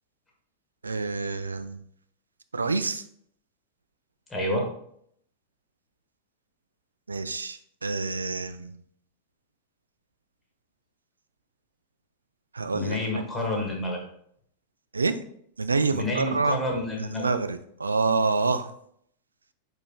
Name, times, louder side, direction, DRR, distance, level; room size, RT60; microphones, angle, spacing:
voice 1, 0.8-1.8 2.5-3.0 7.1-8.7 12.5-13.0 14.9-15.1 15.6-16.6 17.0-18.7, right 4 dB, 75° right, 11 dB, 0.3 m, -27 dB
voice 2, 4.3-4.7 12.7-14.1 15.9-17.3, left 1 dB, 15° left, -1 dB, 1.4 m, -29 dB
4.8 x 4.4 x 2.3 m, 0.67 s
figure-of-eight pair, 90°, 0 cm